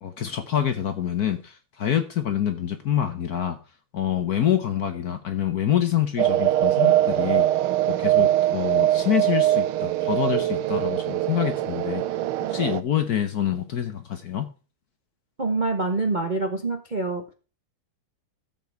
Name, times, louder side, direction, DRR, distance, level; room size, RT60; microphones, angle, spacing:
voice 1, 0.0-3.6 3.9-7.5 7.9-12.0 12.5-14.5, left 10 dB, 55° left, 1.2 m, -26 dB
sound 1, 6.2-12.8, right 13 dB, 80° right, 1.5 m, -22 dB
voice 2, 15.4-17.2, right 3 dB, 35° right, 0.7 m, -25 dB
13.5 x 7.5 x 4.6 m
omnidirectional pair, 2.4 m